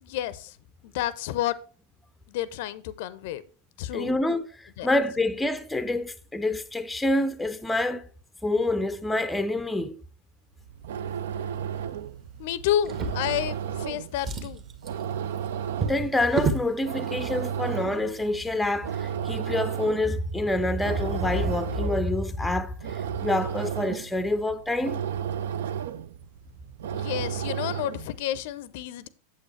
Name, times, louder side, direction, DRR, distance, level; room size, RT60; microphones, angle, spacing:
voice 1, 0.0-0.6 0.8-1.6 2.3-3.4 3.8-4.2 4.8-4.9 12.4-14.6 26.9-29.1, left 12 dB, 50° left, 0.6 m, -30 dB
voice 2, 3.9-8.0 8.4-10.0 15.8-25.0, left 1 dB, 5° left, 0.6 m, -27 dB
sound 1, 10.6-28.2, right 9 dB, 60° right, 0.4 m, -33 dB
Drawer open or close, 12.8-13.8 14.1-16.7 17.6-17.8 18.1-18.2, right 4 dB, 30° right, 1.1 m, -31 dB
8.5 x 7.8 x 3.2 m
figure-of-eight pair, 90°, 0 cm